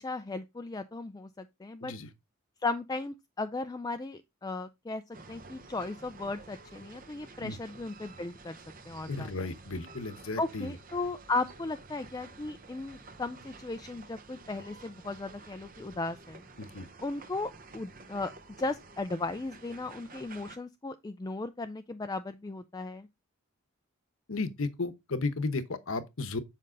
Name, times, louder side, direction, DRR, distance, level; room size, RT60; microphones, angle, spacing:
voice 1, 0.0-1.9 2.6-5.0 5.3-8.5 8.9-9.5 10.4-16.4 17.0-18.3 18.6-23.1, left 3 dB, 20° left, 0.3 m, -36 dB
sound 1, 5.1-20.6, right 3 dB, 40° right, 0.9 m, -51 dB
voice 2, 9.1-10.7 16.6-16.9 24.3-26.4, left 3 dB, 75° left, 1.0 m, -34 dB
7.5 x 5.4 x 3.8 m
head